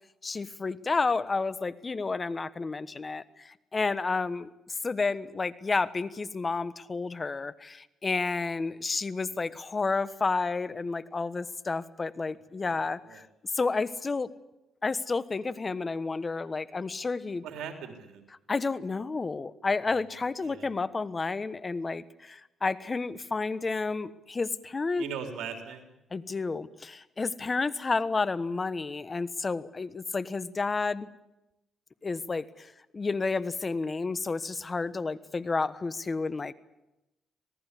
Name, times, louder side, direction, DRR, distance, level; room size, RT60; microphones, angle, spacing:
voice 1, 0.2-13.2 13.5-14.3 14.8-17.5 18.5-25.0 26.1-31.1 32.0-36.5, left 4 dB, 30° left, 15 dB, 1.2 m, -31 dB
voice 2, 17.4-18.2 20.4-20.7 25.0-25.8, right 7 dB, 85° right, 4 dB, 3.8 m, -39 dB
26.5 x 18.5 x 8.4 m, 0.94 s
cardioid pair, 90°, 0 cm